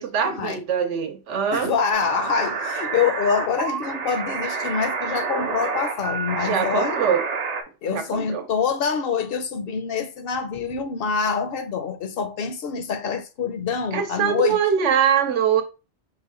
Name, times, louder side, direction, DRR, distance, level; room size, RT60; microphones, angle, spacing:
voice 1, 0.0-1.7 6.4-7.2 7.8-8.5 13.9-15.6, right 8 dB, 80° right, 1.1 m, -23 dB
voice 2, 1.5-7.0 7.8-14.6, left 6 dB, 60° left, 0.7 m, -25 dB
sound 1, 1.9-7.6, right 5 dB, 50° right, 0.5 m, -28 dB
5.2 x 2.1 x 3.6 m
omnidirectional pair, 1.2 m